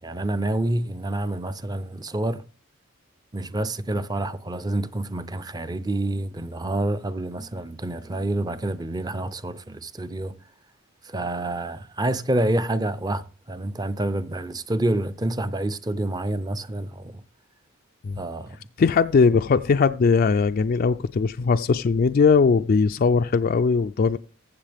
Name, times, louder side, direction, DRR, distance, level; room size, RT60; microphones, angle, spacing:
voice 1, 0.0-2.4 3.3-10.3 11.0-17.2 18.2-18.6, right 1 dB, 20° right, 0.5 m, -28 dB
voice 2, 18.8-24.2, left 5 dB, 45° left, 0.3 m, -20 dB
15.0 x 6.9 x 3.5 m
head